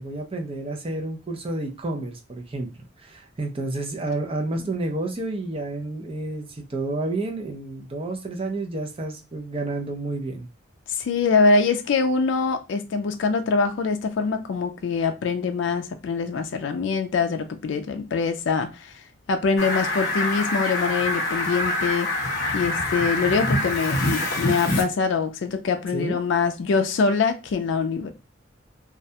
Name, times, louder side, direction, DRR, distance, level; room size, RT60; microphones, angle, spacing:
voice 1, 0.0-2.7 3.0-10.5 25.9-26.2, right 2 dB, 30° right, 0.5 m, -30 dB
voice 2, 10.9-19.0 19.3-22.1 22.5-28.1, left 4 dB, 70° left, 0.3 m, -24 dB
Fowl, 19.6-24.8, left 1 dB, 55° left, 0.7 m, -25 dB
2.3 x 2.1 x 2.7 m
head